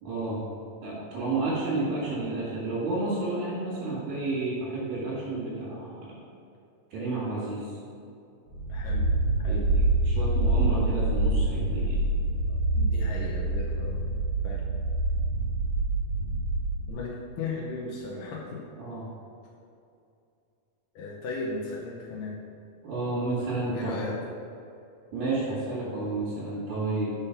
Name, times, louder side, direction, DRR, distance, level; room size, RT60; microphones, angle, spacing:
voice 1, 0.0-0.5 0.8-6.1 6.9-7.8 9.5-12.0 18.8-19.0 22.8-24.1 25.1-27.1, right 2 dB, 80° right, -10 dB, 3.8 m, -31 dB
sound 1, 8.5-16.9, right 2 dB, 45° right, 2.4 m, -26 dB
voice 2, 8.7-9.1 9.4-9.7 12.5-14.0 14.4-14.7 16.9-18.7 21.0-22.4 23.7-24.2, left 3 dB, 75° left, -3 dB, 2.4 m, -36 dB
7.0 x 5.3 x 5.8 m, 2.6 s
omnidirectional pair, 4.0 m